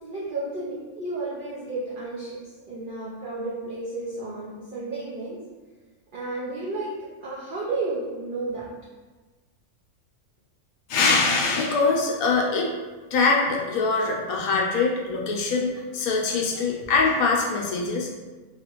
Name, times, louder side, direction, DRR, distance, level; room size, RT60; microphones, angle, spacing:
voice 1, 0.0-5.4 6.1-6.9 7.2-8.7, right 2 dB, 75° right, -7 dB, 0.4 m, -32 dB
voice 2, 10.9-12.7 13.1-18.1, left 4 dB, 80° left, 0 dB, 1.0 m, -23 dB
2.8 x 2.4 x 2.9 m, 1.3 s
omnidirectional pair, 1.5 m